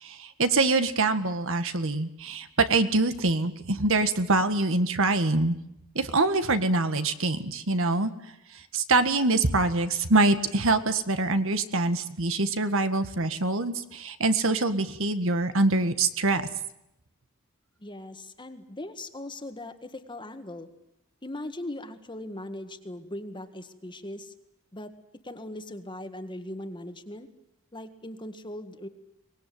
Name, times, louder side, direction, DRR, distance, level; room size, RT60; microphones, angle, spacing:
voice 1, 0.0-5.5 5.9-8.1 8.7-16.4, right 2 dB, 65° right, 10 dB, 1.7 m, -24 dB
voice 2, 17.8-20.7 21.2-24.3 24.7-24.9 25.2-27.3 27.7-28.9, left 1 dB, 20° left, 8 dB, 1.8 m, -39 dB
24.0 x 19.5 x 9.4 m, 0.82 s
head